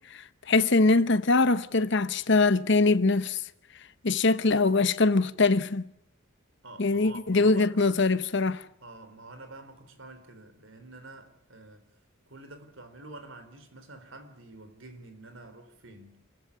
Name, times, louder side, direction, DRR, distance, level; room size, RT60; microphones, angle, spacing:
voice 1, 0.5-3.4 4.0-5.8 6.8-8.6, left 3 dB, 55° left, 1.0 m, -22 dB
voice 2, 6.6-7.8 8.8-11.9 12.3-16.3, right 2 dB, 65° right, 3.9 m, -48 dB
27.5 x 15.5 x 8.4 m
head